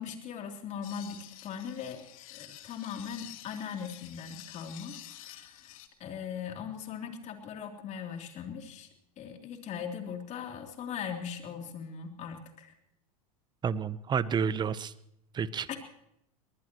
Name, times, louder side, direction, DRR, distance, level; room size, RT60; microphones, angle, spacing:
voice 1, 0.0-8.9 9.2-12.7 15.7-15.8, left 7 dB, 40° left, 3 dB, 3.3 m, -40 dB
sound 1, 0.8-5.9, left 13 dB, 70° left, 1.8 m, -49 dB
voice 2, 13.6-14.9 15.3-15.7, right 6 dB, 25° right, 16 dB, 0.8 m, -30 dB
22.5 x 19.5 x 3.1 m, 0.77 s
hypercardioid pair, 105°, 19 cm